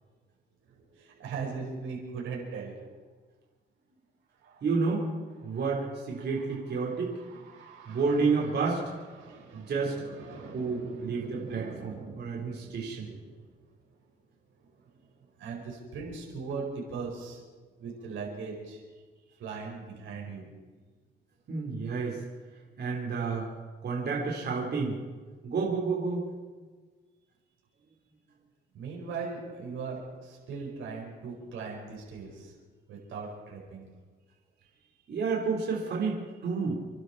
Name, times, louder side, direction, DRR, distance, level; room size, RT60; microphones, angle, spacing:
voice 1, 0.9-2.7 4.4-4.6 7.3-8.0 9.2-13.4 14.9-15.0 15.4-17.4 17.8-18.8 19.4-20.5 28.7-32.5 32.9-33.9, right 5 dB, 80° right, -2 dB, 5.0 m, -40 dB
voice 2, 4.6-5.1 5.4-7.2 7.9-8.8 9.5-9.9 10.5-13.1 21.5-22.2 22.8-23.5 23.8-25.0 25.4-26.3 35.1-36.8, right 4 dB, 55° right, -2 dB, 4.1 m, -30 dB
27.5 x 12.0 x 4.3 m, 1.4 s
cardioid pair, 90°, 20 cm